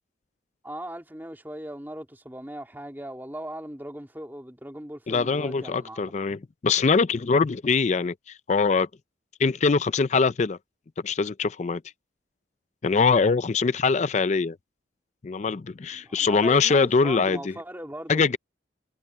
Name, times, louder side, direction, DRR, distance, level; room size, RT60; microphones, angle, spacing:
voice 1, 0.6-6.1 15.9-18.2, right 1 dB, 10° right, 2.9 m, -39 dB
voice 2, 5.1-8.1 8.5-8.9 9.4-10.6 11.0-11.8 12.8-14.6 15.2-17.5 18.1-18.4, left 4 dB, 40° left, 0.4 m, -23 dB
head